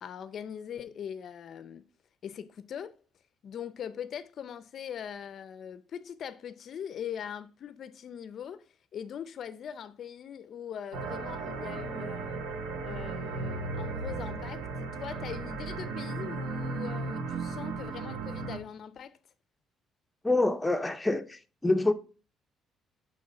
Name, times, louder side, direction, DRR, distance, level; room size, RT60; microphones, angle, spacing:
voice 1, 0.0-1.9 2.2-3.0 3.4-12.4 12.8-19.2, left 8 dB, 55° left, 0.5 m, -41 dB
sound 1, 10.9-18.6, right 4 dB, 80° right, 1.2 m, -36 dB
voice 2, 20.2-21.9, left 2 dB, 10° left, 0.7 m, -26 dB
7.8 x 3.7 x 5.2 m
cardioid pair, 100°, 0 cm